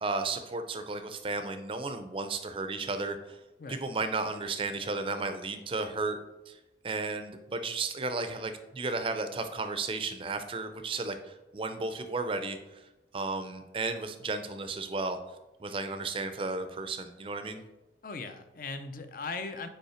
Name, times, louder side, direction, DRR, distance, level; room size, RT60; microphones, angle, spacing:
voice 1, 0.0-3.4 3.7-6.2 6.5-6.6 6.8-12.8 13.1-15.2 15.6-17.6, right 3 dB, 30° right, 8 dB, 0.5 m, -34 dB
voice 2, 18.0-19.7, left 4 dB, 50° left, 9 dB, 0.5 m, -38 dB
5.5 x 4.4 x 4.3 m, 1.0 s
head